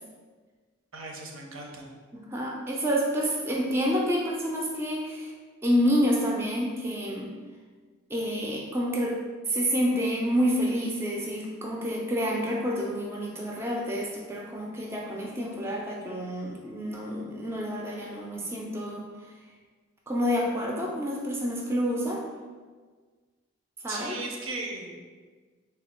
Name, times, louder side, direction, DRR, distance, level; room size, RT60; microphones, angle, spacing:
voice 1, 0.9-1.9 23.9-25.0, right 2 dB, 80° right, 1 dB, 0.6 m, -37 dB
voice 2, 2.1-5.3 5.6-7.3 8.1-9.2 9.5-19.1 20.1-22.2 23.8-24.2, equal, 10° right, -1 dB, 0.3 m, -28 dB
3.5 x 2.3 x 4.2 m, 1.5 s
head